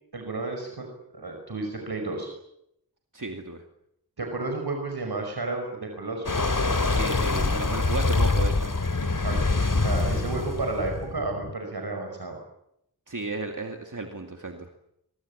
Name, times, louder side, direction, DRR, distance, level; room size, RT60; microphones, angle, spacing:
voice 1, 0.1-0.9 1.1-2.3 4.2-6.5 9.1-12.4, right 3 dB, 80° right, 3 dB, 5.4 m, -32 dB
voice 2, 3.1-3.6 6.9-8.7 13.1-14.7, right 3 dB, 55° right, 4 dB, 2.4 m, -34 dB
sound 1, 6.3-11.5, left 3 dB, 55° left, 2.5 m, -25 dB
23.5 x 22.5 x 8.7 m, 0.78 s
wide cardioid pair, 55°, 38 cm